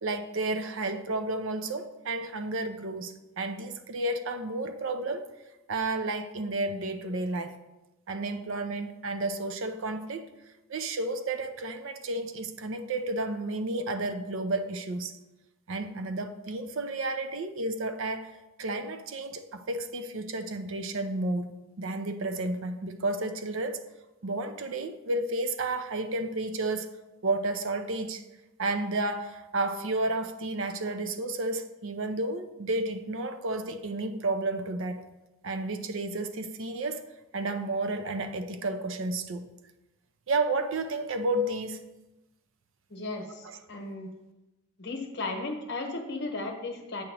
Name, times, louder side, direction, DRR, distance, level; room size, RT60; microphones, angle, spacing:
voice 1, 0.0-5.3 5.7-7.6 8.1-10.3 10.7-15.2 15.7-21.5 21.8-23.8 24.2-26.9 27.2-28.2 28.6-35.0 35.4-37.0 37.3-39.4 40.3-41.8 43.4-43.6, right 2 dB, 60° right, 0.5 m, -31 dB
voice 2, 42.9-44.1 44.8-47.0, left 2 dB, 50° left, 1.0 m, -35 dB
8.4 x 3.0 x 6.2 m
head